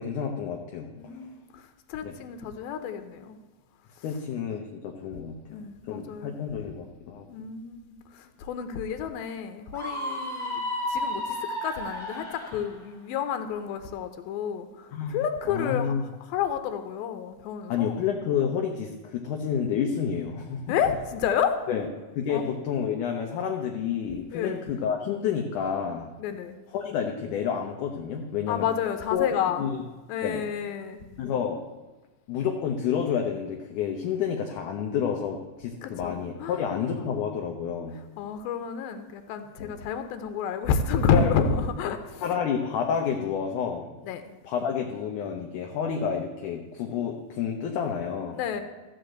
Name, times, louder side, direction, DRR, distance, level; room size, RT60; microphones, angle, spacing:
voice 1, 0.0-0.9 2.0-2.2 4.0-5.6 5.9-7.3 14.9-15.2 15.5-16.0 17.7-20.7 21.7-21.9 22.2-26.1 26.7-28.7 29.1-29.8 30.2-30.4 31.2-31.6 32.3-38.0 39.6-39.7 41.1-41.4 42.2-43.9 44.4-48.4, left 7 dB, 70° left, 2 dB, 2.2 m, -29 dB
voice 2, 0.9-3.4 5.5-6.4 7.3-10.6 10.9-15.9 16.3-18.1 20.7-21.6 22.3-22.4 24.3-24.6 26.2-26.5 28.5-29.6 30.1-31.0 35.8-36.6 37.0-37.1 37.9-42.3 44.1-44.2 48.3-48.6, left 7 dB, 90° left, 8 dB, 2.6 m, -30 dB
Screaming, 9.7-12.7, left 1 dB, 10° right, 1.7 m, -32 dB
14.5 x 5.0 x 7.9 m, 1.2 s
omnidirectional pair, 4.1 m